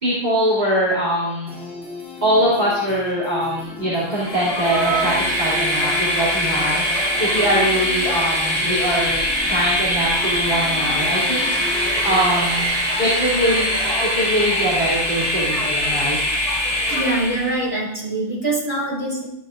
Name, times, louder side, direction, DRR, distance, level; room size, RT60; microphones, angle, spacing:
voice 1, 0.0-1.6 2.2-9.2 9.5-12.7 13.0-16.2, equal, 40° right, -9 dB, 3.0 m, -22 dB
sound 1, 1.5-12.8, left 4 dB, ahead, 2.7 m, -36 dB
Train, 4.1-17.6, equal, 30° left, 2.3 m, -22 dB
voice 2, 16.8-19.3, right 2 dB, 25° right, -5 dB, 4.2 m, -24 dB
12.5 x 10.5 x 2.5 m, 0.84 s
omnidirectional pair, 1.2 m